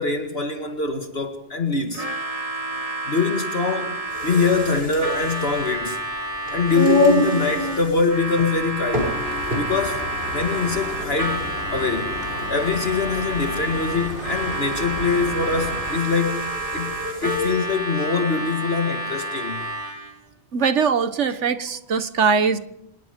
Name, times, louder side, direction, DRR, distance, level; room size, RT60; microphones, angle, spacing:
voice 1, 0.0-2.1 3.0-6.0 6.5-9.3 9.5-10.0 10.3-12.1 12.5-19.7, left 4 dB, 55° left, 2.2 m, -24 dB
Harmonica, 1.9-20.2, right 1 dB, 30° right, 2.0 m, -30 dB
sound 1, 4.0-17.6, left 1 dB, 50° right, 6.9 m, -28 dB
sound 2, 8.9-16.0, left 2 dB, 75° left, 4.0 m, -34 dB
voice 2, 20.5-22.6, right 5 dB, 75° right, 1.6 m, -21 dB
26.5 x 20.5 x 5.3 m
omnidirectional pair, 1.2 m